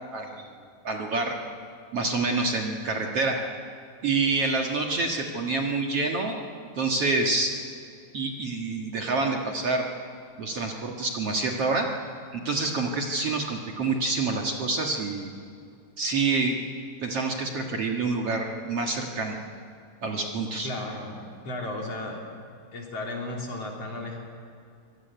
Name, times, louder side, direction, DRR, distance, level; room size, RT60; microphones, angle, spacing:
voice 1, 0.8-1.4 1.9-3.4 4.0-6.4 6.8-7.5 8.1-9.8 10.4-11.9 12.3-15.3 16.0-16.6 17.0-19.4 20.0-20.7, right 3 dB, 50° right, 1 dB, 2.4 m, -27 dB
voice 2, 20.6-22.3 22.7-24.2, left 2 dB, 45° left, 0 dB, 4.5 m, -34 dB
25.5 x 20.5 x 9.3 m, 2.3 s
omnidirectional pair, 3.9 m